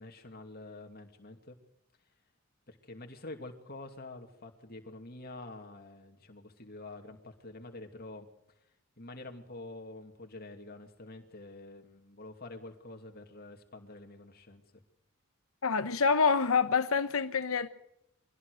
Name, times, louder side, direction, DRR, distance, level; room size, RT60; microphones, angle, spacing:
voice 1, 0.0-1.6 2.7-8.3 9.0-14.6, left 2 dB, 45° left, 2.6 m, -47 dB
voice 2, 15.6-17.7, left 5 dB, 75° left, 1.0 m, -26 dB
24.0 x 17.0 x 6.6 m
head